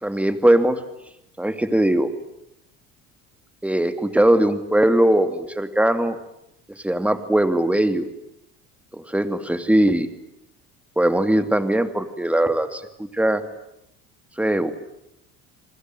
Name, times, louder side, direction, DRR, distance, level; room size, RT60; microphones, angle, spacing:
voice 1, 0.0-0.8 1.4-2.1 3.6-6.2 6.8-8.1 8.9-10.1 11.0-12.8 13.1-13.4 14.4-14.7, right 1 dB, 5° right, 9 dB, 2.7 m, -20 dB
29.5 x 21.5 x 9.2 m, 0.82 s
cardioid pair, 110°, 31 cm